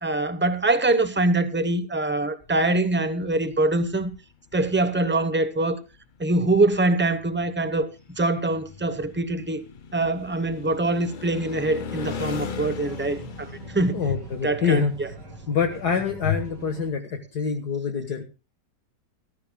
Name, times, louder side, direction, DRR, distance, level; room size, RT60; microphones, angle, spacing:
voice 1, 0.0-4.1 4.5-5.8 6.2-7.9 8.2-9.6 9.9-14.0 14.4-15.1, right 2 dB, 10° right, 0.5 m, -24 dB
sound 1, 2.4-2.8 3.2-4.2 4.5-4.7 5.0-5.2 5.9-6.0 6.2-16.0, left 5 dB, 80° left, 0.4 m, -39 dB
sound 2, 11.8-16.9, right 4 dB, 75° right, 3.3 m, -44 dB
voice 2, 13.9-14.9 15.5-18.2, left 6 dB, 65° left, 1.9 m, -25 dB
19.5 x 14.0 x 2.2 m
omnidirectional pair, 1.9 m